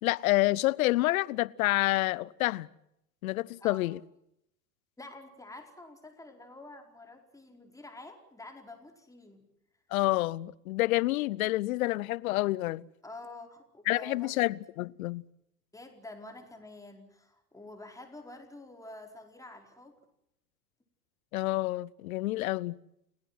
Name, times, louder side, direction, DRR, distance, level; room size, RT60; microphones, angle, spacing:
voice 1, 0.0-2.7 3.2-4.0 9.9-12.9 13.9-15.2 21.3-22.8, left 18 dB, 55° left, 0.9 m, -28 dB
voice 2, 5.0-9.4 13.0-14.4 15.7-20.0, left 2 dB, 5° left, 4.8 m, -48 dB
30.0 x 18.0 x 7.8 m
hypercardioid pair, 90°, 49 cm